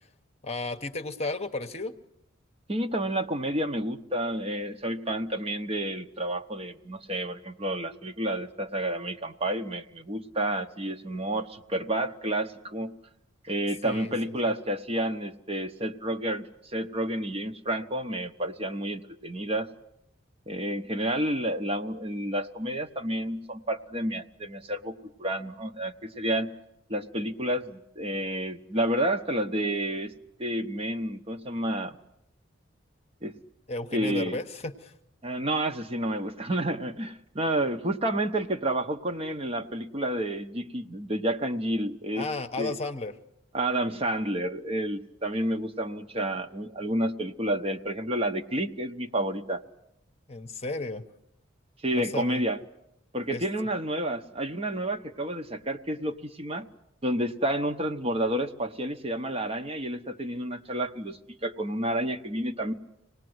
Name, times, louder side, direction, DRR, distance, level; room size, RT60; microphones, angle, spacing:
voice 1, 0.4-1.9 13.8-14.3 33.7-34.9 42.1-43.2 50.3-51.0 51.9-52.4 53.3-53.4, left 2 dB, 35° left, 8 dB, 1.0 m, -33 dB
voice 2, 2.7-12.9 13.4-19.7 20.5-26.5 26.9-30.1 30.4-32.0 33.2-33.3 33.9-34.4 35.2-42.2 42.6-42.7 43.5-49.6 51.8-52.6 53.1-56.7 57.0-62.7, right 1 dB, 30° right, 6 dB, 0.9 m, -30 dB
25.5 x 19.0 x 7.9 m, 0.81 s
head